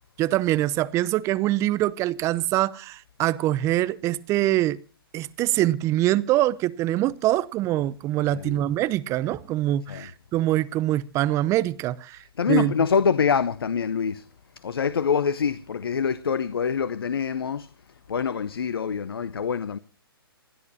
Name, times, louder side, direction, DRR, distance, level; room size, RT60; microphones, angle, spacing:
voice 1, 0.2-4.8 5.1-12.7, right 15 dB, 25° right, 0.8 m, -24 dB
voice 2, 8.3-8.6 9.9-10.1 12.4-14.2 14.6-17.7 18.1-19.8, left 6 dB, 70° left, 0.9 m, -25 dB
27.5 x 11.0 x 2.8 m
figure-of-eight pair, 125°, 13 cm